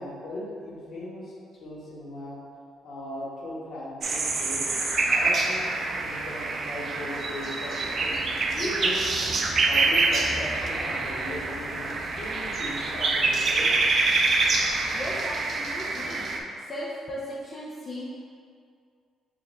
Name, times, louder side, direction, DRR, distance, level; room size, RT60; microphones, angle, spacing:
voice 1, 0.0-1.3 1.6-2.4 2.8-4.7 5.1-9.1 9.7-13.8, left 1 dB, 65° left, -6 dB, 1.3 m, -37 dB
sound 1, 4.0-16.4, right 3 dB, 50° right, 0.5 m, -26 dB
sound 2, 7.2-15.2, right 1 dB, 10° right, 0.6 m, -44 dB
voice 2, 14.9-16.3 16.7-18.1, equal, 40° left, -7 dB, 0.6 m, -36 dB
6.6 x 2.5 x 2.3 m, 2.2 s
cardioid pair, 90°, 0 cm